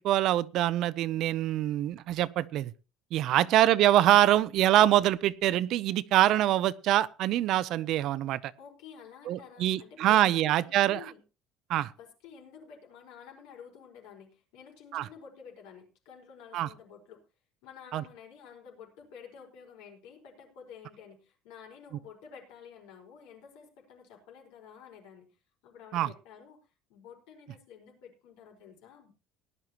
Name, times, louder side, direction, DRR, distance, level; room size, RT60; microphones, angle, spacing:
voice 1, 0.0-2.7 3.1-8.5 9.3-11.0 11.7-11.9 14.9-15.1 16.5-16.7 17.9-18.0 25.9-26.1, right 13 dB, 55° right, 0.6 m, -24 dB
voice 2, 3.3-3.8 8.6-11.2 12.0-17.2 17.6-25.4 25.6-26.6 26.9-29.1, left 7 dB, 90° left, 5.0 m, -51 dB
18.5 x 11.0 x 3.0 m
cardioid pair, 150°, 0 cm